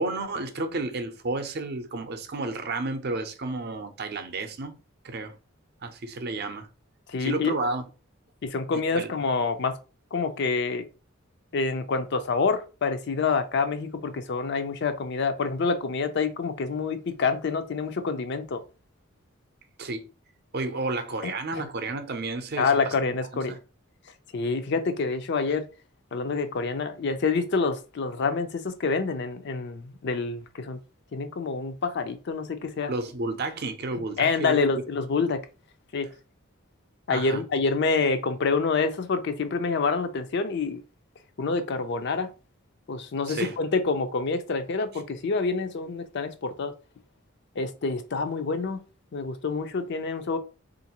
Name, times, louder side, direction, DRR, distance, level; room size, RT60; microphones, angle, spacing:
voice 1, 0.0-4.7 5.0-5.4 5.8-6.7 7.2-7.8 8.9-9.1 19.8-20.1 20.5-22.9 23.5-23.6 32.9-34.6 37.1-37.4 43.3-43.6, right 2 dB, 50° right, 0.6 m, -31 dB
voice 2, 7.1-7.5 8.4-9.8 10.1-10.8 11.5-18.6 21.2-21.6 22.6-23.6 24.3-25.7 26.1-30.8 31.1-32.9 34.2-35.4 35.9-36.1 37.1-40.8 41.4-42.3 42.9-46.7 47.6-48.8 49.1-50.4, left 4 dB, 55° left, 0.4 m, -27 dB
3.8 x 2.5 x 2.9 m
head